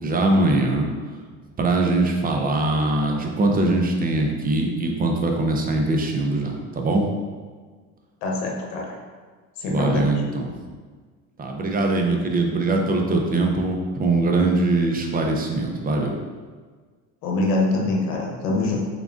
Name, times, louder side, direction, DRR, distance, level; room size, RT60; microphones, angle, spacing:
voice 1, 0.0-0.9 1.6-7.1 9.7-10.5 11.4-16.2, right 2 dB, 25° right, 2 dB, 0.5 m, -22 dB
voice 2, 8.2-8.9 9.6-10.2 17.2-18.8, left 2 dB, 85° left, -1 dB, 0.9 m, -24 dB
3.7 x 3.5 x 2.4 m, 1.5 s
supercardioid pair, 100°, 41 cm